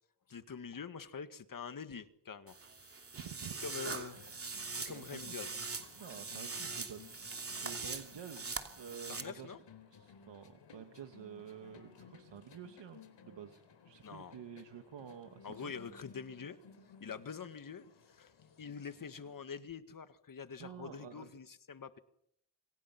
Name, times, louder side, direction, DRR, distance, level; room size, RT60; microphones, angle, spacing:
voice 1, 0.3-2.6 2.8-3.1 3.6-4.2 4.9-5.5 9.1-9.6 14.0-14.3 15.4-16.6 17.0-18.3 18.6-22.0, left 6 dB, 50° left, 10 dB, 1.8 m, -45 dB
sound 1, 2.5-9.2, right 4 dB, 30° right, 2.9 m, -42 dB
voice 2, 3.1-5.5 6.0-9.6 9.9-15.7 20.6-21.3, right 8 dB, 90° right, 6 dB, 1.9 m, -50 dB
sound 2, 3.9-19.4, left 5 dB, 85° left, 4.2 m, -59 dB
27.5 x 26.5 x 5.9 m, 0.74 s
wide cardioid pair, 140°, 42 cm